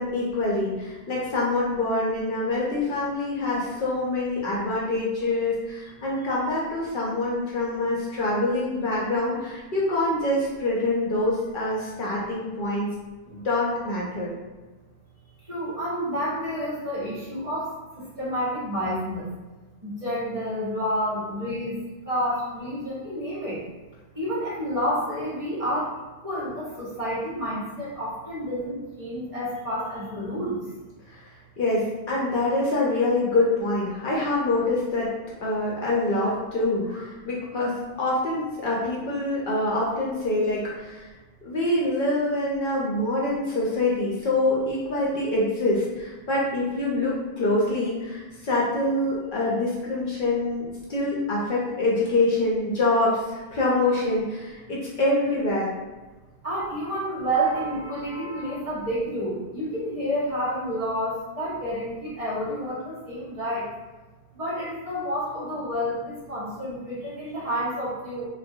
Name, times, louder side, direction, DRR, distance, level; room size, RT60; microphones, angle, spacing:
voice 1, 0.0-12.9 13.3-14.3 31.6-35.1 35.4-41.1 41.4-55.7, left 2 dB, 60° left, -5 dB, 0.7 m, -25 dB
voice 2, 15.5-17.7 18.2-19.3 19.8-21.8 22.1-23.6 24.1-25.9 26.2-30.6 36.9-37.1 56.4-63.6 64.3-68.3, equal, 35° right, -9 dB, 0.9 m, -29 dB
2.3 x 2.1 x 2.6 m, 1.2 s
omnidirectional pair, 1.0 m